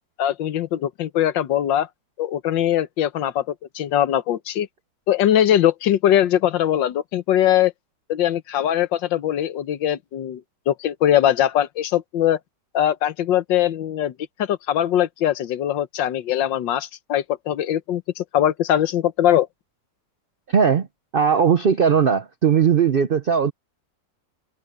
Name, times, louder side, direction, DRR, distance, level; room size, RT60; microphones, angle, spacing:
voice 1, 0.2-1.9 2.2-4.7 5.1-7.7 8.1-10.4 10.7-12.4 12.7-14.1 14.4-19.5, left 11 dB, 85° left, 1.6 m, -21 dB
voice 2, 20.5-20.9 21.1-23.5, right 7 dB, 80° right, 0.5 m, -18 dB
omnidirectional pair, 1.9 m